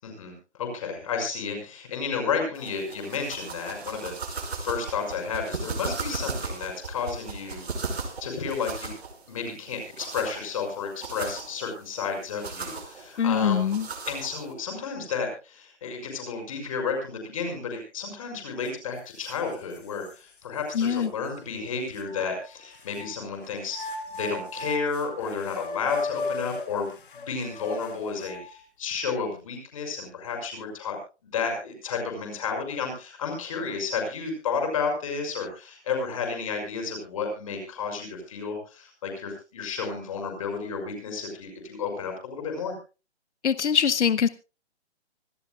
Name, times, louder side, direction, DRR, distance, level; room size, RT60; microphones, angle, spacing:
voice 1, 0.0-8.9 9.3-13.8 14.1-31.0 31.2-42.8, left 5 dB, 30° left, 3 dB, 5.9 m, -32 dB
sound 1, 2.6-14.5, right 4 dB, 65° right, 5.5 m, -37 dB
voice 2, 13.2-13.9 20.7-21.1 43.4-44.3, left 7 dB, 85° left, 15 dB, 0.9 m, -23 dB
sound 2, 18.6-18.7 19.2-20.1 20.8-20.9 22.0-23.1 23.7-28.6, left 2 dB, 50° left, 2.7 m, -36 dB
25.5 x 13.0 x 2.3 m, 0.32 s
hypercardioid pair, 175°, 34 cm